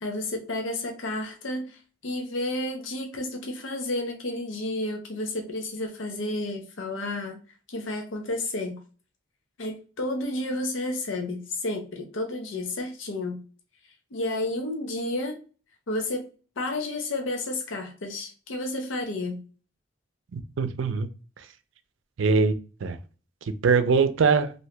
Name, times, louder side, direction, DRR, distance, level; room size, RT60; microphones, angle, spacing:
voice 1, 0.0-7.4 7.7-8.8 9.6-13.4 14.1-15.4 15.9-16.3 16.6-19.4, left 2 dB, 85° left, 3 dB, 0.7 m, -31 dB
voice 2, 20.3-21.1 22.2-22.6 22.8-23.0 23.5-24.5, right 5 dB, 80° right, 10 dB, 0.5 m, -22 dB
2.8 x 2.7 x 3.2 m, 0.36 s
head